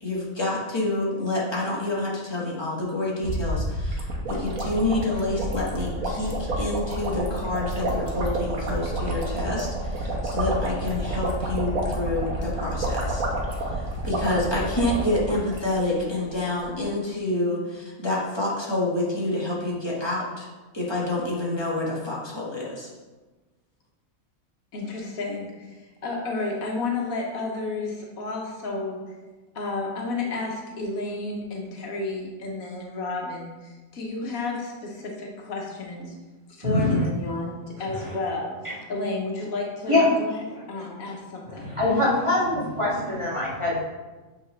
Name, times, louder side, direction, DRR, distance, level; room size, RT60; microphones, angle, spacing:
voice 1, 0.0-13.2 13.5-20.5 20.7-22.9, left 2 dB, 20° left, -6 dB, 1.5 m, -28 dB
sound 1, 3.2-16.0 16.3-16.4 16.6-16.8, right 1 dB, 80° right, 1.4 m, -29 dB
voice 2, 24.7-29.2 29.5-36.1 36.5-38.5 38.9-42.1, left 3 dB, 80° left, 0 dB, 1.5 m, -32 dB
voice 3, 36.6-37.0 37.9-38.1 38.6-38.7 39.9-40.1 41.0-41.1 41.5-43.8, left 2 dB, 20° right, -8 dB, 1.9 m, -23 dB
8.0 x 4.1 x 3.2 m, 1.2 s
omnidirectional pair, 1.4 m